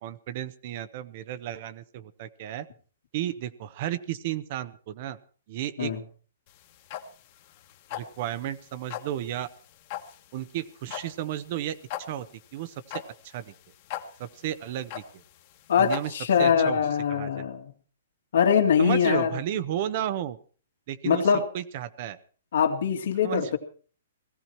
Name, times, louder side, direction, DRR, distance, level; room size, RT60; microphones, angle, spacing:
voice 1, 0.0-2.7 3.1-5.2 5.5-5.9 7.9-9.5 10.3-11.8 12.1-12.3 12.5-13.5 14.2-15.2 15.8-16.1 16.4-16.8 17.1-17.4 18.8-20.4 20.9-22.2 23.2-23.6, right 11 dB, 45° right, 14 dB, 0.9 m, -33 dB
sound 1, 6.5-16.4, left 12 dB, 40° left, 1.6 m, -40 dB
voice 2, 15.7-17.7 18.3-19.3 21.0-21.5 22.5-23.6, left 7 dB, 70° left, 4 dB, 2.4 m, -23 dB
17.5 x 14.5 x 4.5 m, 0.41 s
hypercardioid pair, 155°, 0 cm